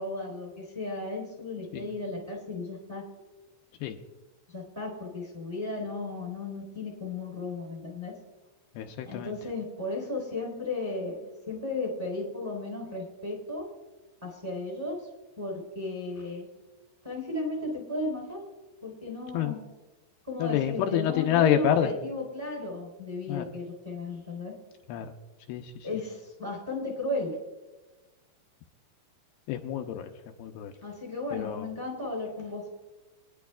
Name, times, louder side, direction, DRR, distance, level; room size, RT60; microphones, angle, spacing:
voice 1, 0.0-3.0 4.5-8.1 9.0-13.7 14.2-15.0 15.4-16.5 17.0-18.4 18.8-19.6 20.3-24.5 25.8-27.3 30.8-32.7, left 2 dB, 5° right, -1 dB, 3.2 m, -35 dB
voice 2, 8.8-9.3 19.3-19.5 20.4-21.9 23.3-23.5 24.9-25.1 25.5-25.9 29.5-30.1 30.4-30.7 31.3-31.7, left 10 dB, 85° left, 4 dB, 2.5 m, -27 dB
24.5 x 10.5 x 2.3 m, 1.2 s
omnidirectional pair, 4.7 m